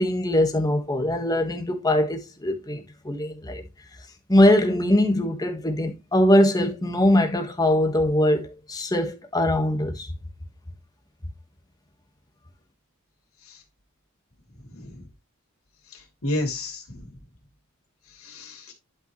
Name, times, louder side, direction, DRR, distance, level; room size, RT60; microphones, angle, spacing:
voice 1, 0.0-3.6 4.3-10.1, left 1 dB, 15° left, 1.5 m, -22 dB
voice 2, 16.2-17.0 18.2-18.7, left 1 dB, 75° left, 3.3 m, -31 dB
11.5 x 5.4 x 3.1 m
head